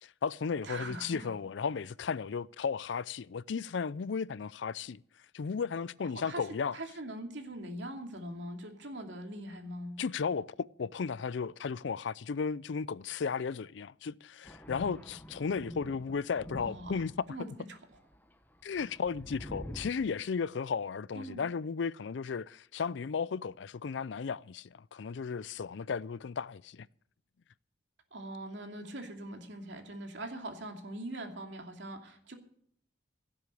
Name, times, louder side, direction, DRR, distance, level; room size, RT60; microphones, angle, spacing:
voice 1, 0.0-5.0 5.3-6.8 10.0-17.1 18.6-26.9, left 5 dB, 75° left, 0.4 m, -35 dB
voice 2, 0.6-1.3 6.2-6.5 6.7-10.0 16.5-16.9 17.3-17.8 21.1-21.5 28.1-32.3, right 1 dB, 70° right, 2.6 m, -42 dB
Thunder, 14.4-17.4 17.9-19.9, equal, 10° left, 0.9 m, -46 dB
17.0 x 7.8 x 6.8 m
head